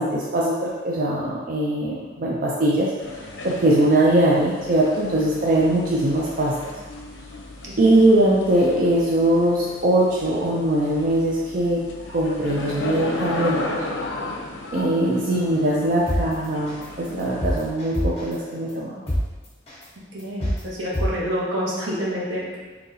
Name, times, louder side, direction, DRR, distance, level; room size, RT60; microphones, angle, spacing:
voice 1, 0.0-2.9 3.4-6.7 7.8-13.8 14.7-18.9, right 1 dB, 45° right, -4 dB, 0.4 m, -21 dB
sound 1, 3.0-17.7, left 2 dB, 85° left, 0.5 m, -35 dB
sound 2, 16.1-16.2 16.7-16.8 17.2-18.3 18.7-18.8 19.1-19.2 19.7-19.8 20.2-20.6 20.9-21.1, equal, 35° left, 1.0 m, -23 dB
voice 2, 20.1-22.6, equal, 80° right, -5 dB, 0.9 m, -28 dB
3.9 x 2.8 x 2.7 m, 1.3 s
head